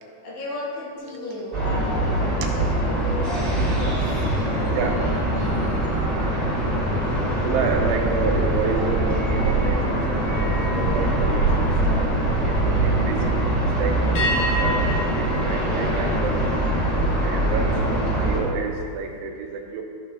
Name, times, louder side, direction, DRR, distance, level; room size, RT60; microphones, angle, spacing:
voice 1, 0.2-5.2, left 2 dB, 65° left, -7 dB, 4.0 m, -35 dB
sound 1, 0.9-6.5 7.0-7.3 10.2-12.4 14.1-16.7, left 1 dB, 85° left, 1.8 m, -34 dB
sound 2, 1.5-18.4, right 1 dB, 35° right, 1.0 m, -23 dB
voice 2, 7.4-12.1 12.4-16.4 17.2-19.8, right 5 dB, 85° right, 3 dB, 3.1 m, -30 dB
14.0 x 6.5 x 2.7 m, 2.2 s
omnidirectional pair, 5.5 m